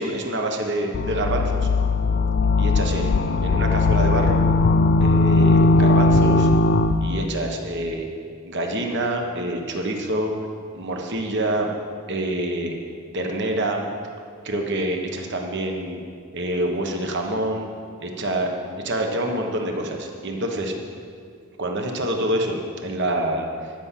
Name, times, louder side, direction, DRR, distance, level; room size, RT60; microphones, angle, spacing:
voice 1, 0.0-1.6 2.6-4.4 5.0-6.5 7.0-8.1 8.4-10.3 10.7-11.7 12.1-12.8 13.1-13.8 14.4-16.0 16.3-17.7 18.0-18.5 18.8-20.8 21.6-23.5, right 1 dB, 55° right, 2 dB, 1.3 m, -26 dB
sound 1, 0.9-7.2, left 3 dB, 50° left, 0.4 m, -18 dB
12.5 x 6.0 x 7.5 m, 2.2 s
head